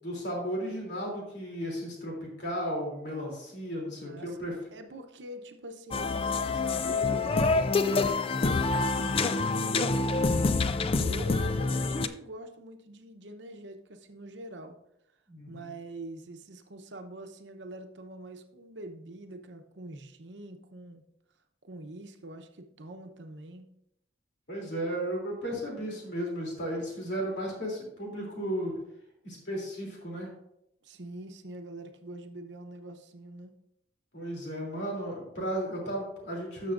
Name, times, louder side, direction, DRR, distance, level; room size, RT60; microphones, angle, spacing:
voice 1, 0.0-4.5 15.3-15.7 24.5-28.7 29.2-30.3 34.1-36.7, equal, 70° left, -1 dB, 3.0 m, -34 dB
voice 2, 4.0-4.4 4.7-10.3 11.0-14.8 15.5-21.0 21.6-23.7 30.8-33.6, right 1 dB, 80° right, 7 dB, 0.8 m, -44 dB
sound 1, 5.9-12.1, left 3 dB, 30° left, 0.3 m, -26 dB
13.0 x 6.2 x 2.5 m, 0.80 s
head